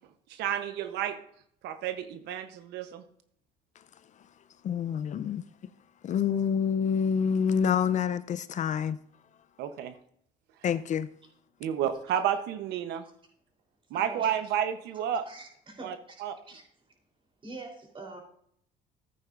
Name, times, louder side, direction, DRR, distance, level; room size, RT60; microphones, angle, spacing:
voice 1, 0.3-1.2 1.6-3.0 9.6-9.9 11.6-13.0 13.9-15.2 15.8-16.0 16.2-16.3, right 9 dB, 85° right, 0.8 m, -31 dB
voice 2, 4.6-5.4 6.0-9.0 10.6-11.1, left 7 dB, 45° left, 0.5 m, -27 dB
voice 3, 13.9-14.3 15.3-16.2 16.5-16.6 17.4-18.2, right 3 dB, 30° right, 3.4 m, -44 dB
14.0 x 9.0 x 2.5 m
cardioid pair, 110°, 17 cm